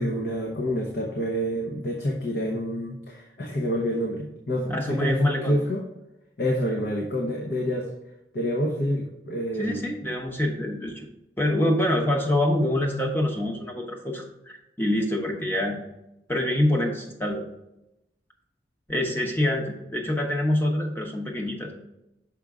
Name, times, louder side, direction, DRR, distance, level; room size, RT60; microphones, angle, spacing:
voice 1, 0.0-5.8 6.4-7.9 8.3-9.9, equal, 60° left, 0 dB, 0.8 m, -27 dB
voice 2, 4.7-5.6 9.6-11.1 11.4-15.8 16.3-17.4 18.9-21.7, left 1 dB, 10° left, 0 dB, 0.9 m, -26 dB
6.2 x 5.1 x 3.6 m, 0.89 s
head